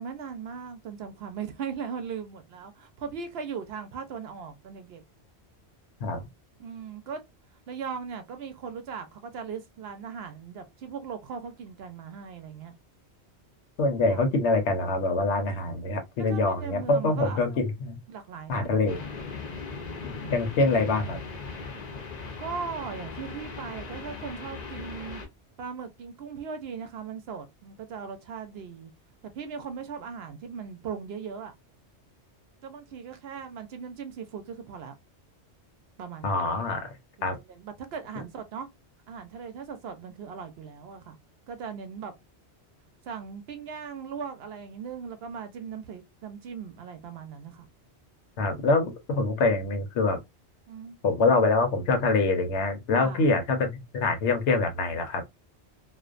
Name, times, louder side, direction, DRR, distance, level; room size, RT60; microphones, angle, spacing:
voice 1, 0.0-5.0 6.6-7.2 7.7-12.8 14.1-14.2 16.3-17.4 18.1-18.7 22.4-25.2 25.6-28.9 29.2-31.5 32.6-34.9 36.0-36.5 37.2-38.7 39.1-41.2 41.5-42.1 43.0-47.7 50.7-51.0 52.9-53.3, right 6 dB, 70° right, 0.8 m, -38 dB
voice 2, 13.8-18.0 18.5-19.0 20.0-21.2 36.2-36.9 37.2-37.4 48.4-50.2 51.0-55.2, left 3 dB, 85° left, 1.0 m, -25 dB
sound 1, 18.9-25.3, left 4 dB, 45° left, 0.6 m, -39 dB
2.5 x 2.1 x 2.4 m
omnidirectional pair, 1.1 m